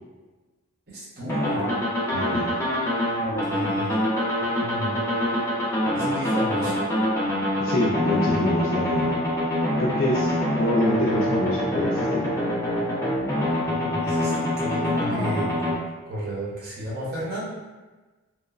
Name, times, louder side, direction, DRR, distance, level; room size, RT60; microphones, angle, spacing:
voice 1, 0.9-1.7 3.2-4.0 4.6-5.0 5.9-6.9 13.6-15.8 16.1-17.4, equal, 50° right, -7 dB, 0.8 m, -32 dB
sound 1, 1.3-15.7, left 1 dB, 10° left, 0.5 m, -25 dB
voice 2, 2.1-2.6 7.6-9.2 9.8-12.3, left 1 dB, 70° left, -3 dB, 0.4 m, -25 dB
3.0 x 2.1 x 2.3 m, 1.2 s
head